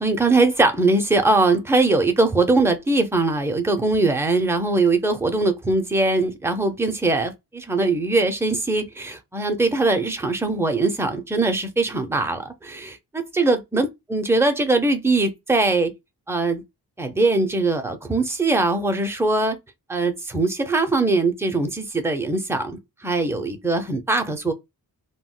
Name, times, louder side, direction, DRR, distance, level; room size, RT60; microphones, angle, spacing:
voice 1, 0.0-15.9 16.3-16.6 17.0-19.6 19.9-24.5, right 2 dB, 5° right, 0.4 m, -21 dB
2.2 x 2.1 x 3.7 m
wide cardioid pair, 140°, 38 cm